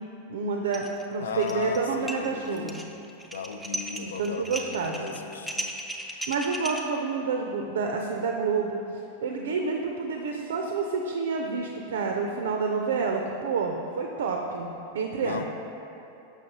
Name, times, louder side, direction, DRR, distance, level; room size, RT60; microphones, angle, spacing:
voice 1, 0.3-2.8 4.0-5.1 6.3-8.8 9.2-15.4, right 4 dB, 60° right, 2 dB, 0.4 m, -29 dB
sound 1, 0.7-1.0 1.3-1.8 2.1-6.8, equal, ahead, 0.5 m, -36 dB
voice 2, 1.2-2.7 3.3-5.8 15.1-15.4, left 5 dB, 65° left, 7 dB, 0.4 m, -35 dB
6.4 x 6.1 x 2.8 m, 2.8 s
figure-of-eight pair, 90°, 0 cm